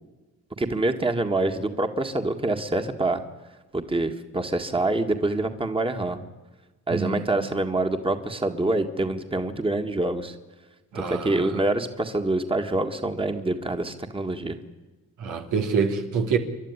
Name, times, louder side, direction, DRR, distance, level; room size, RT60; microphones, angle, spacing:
voice 1, 0.6-3.2 3.7-6.2 6.9-10.4 10.9-14.6, right 2 dB, 20° right, 6 dB, 1.9 m, -26 dB
voice 2, 6.9-7.3 10.9-11.6 15.2-16.4, right 5 dB, 85° right, 4 dB, 2.8 m, -26 dB
29.0 x 12.0 x 9.8 m, 1.2 s
cardioid pair, 90°, 30 cm